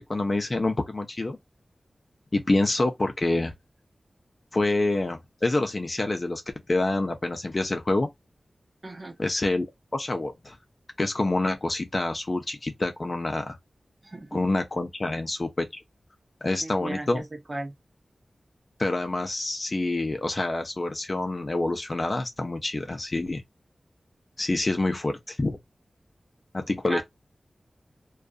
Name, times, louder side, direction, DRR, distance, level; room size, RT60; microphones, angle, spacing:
voice 1, 0.0-1.4 2.3-3.5 4.5-6.4 6.7-8.1 9.2-9.7 9.9-10.6 11.0-13.6 14.3-15.8 16.4-17.2 18.8-23.4 24.4-25.6 26.5-27.0, left 2 dB, 40° left, 0.5 m, -27 dB
voice 2, 8.8-9.2 14.0-14.5 16.6-17.7 26.9-27.0, right 2 dB, 35° right, 0.7 m, -36 dB
2.5 x 2.3 x 2.3 m
wide cardioid pair, 75°, 0 cm